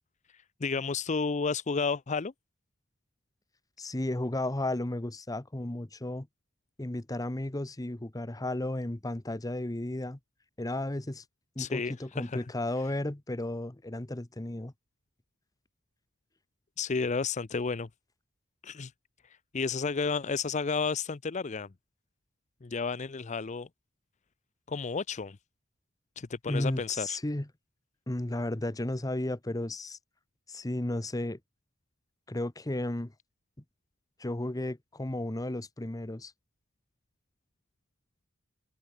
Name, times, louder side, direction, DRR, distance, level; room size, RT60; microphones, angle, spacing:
voice 1, 0.3-2.3 11.6-12.4 16.8-17.9 18.6-18.9 19.5-21.7 22.6-23.7 24.7-25.4 26.2-27.2, left 4 dB, 35° left, 0.6 m, -32 dB
voice 2, 3.8-6.3 6.8-10.2 10.6-11.2 11.6-14.7 26.5-27.5 28.1-30.0 30.5-31.4 32.3-33.1 34.2-36.3, left 1 dB, 20° left, 1.0 m, -33 dB
head